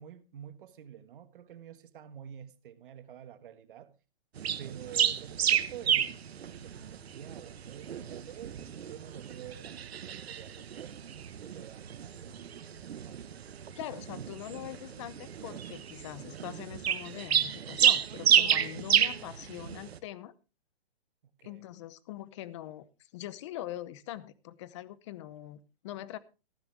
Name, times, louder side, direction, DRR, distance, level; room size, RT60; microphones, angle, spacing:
voice 1, 0.0-3.9 4.6-10.9 11.1-12.3 13.0-13.2 21.4-21.6, right 9 dB, 55° right, 1.5 m, -49 dB
sound 1, 4.4-20.0, right 9 dB, 80° right, 1.3 m, -31 dB
voice 2, 13.7-20.3 21.4-26.2, left 13 dB, 30° left, 0.7 m, -43 dB
14.5 x 12.5 x 3.4 m
hypercardioid pair, 160°, 31 cm